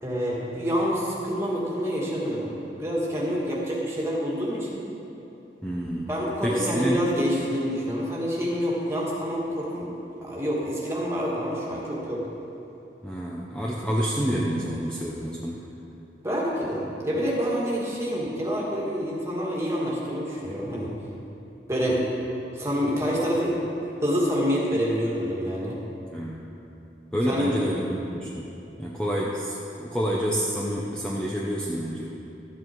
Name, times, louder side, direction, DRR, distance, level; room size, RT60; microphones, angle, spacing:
voice 1, 0.0-4.8 6.1-9.9 10.2-12.2 16.2-20.9 21.7-22.0 22.6-23.6 24.0-25.8 27.3-27.6, equal, 15° right, -5 dB, 2.0 m, -27 dB
voice 2, 5.6-6.1 6.4-7.0 13.0-15.6 21.9-22.0 26.0-26.4 27.1-28.5 28.8-32.1, equal, 5° left, -5 dB, 0.7 m, -28 dB
13.0 x 8.3 x 4.6 m, 2.9 s
head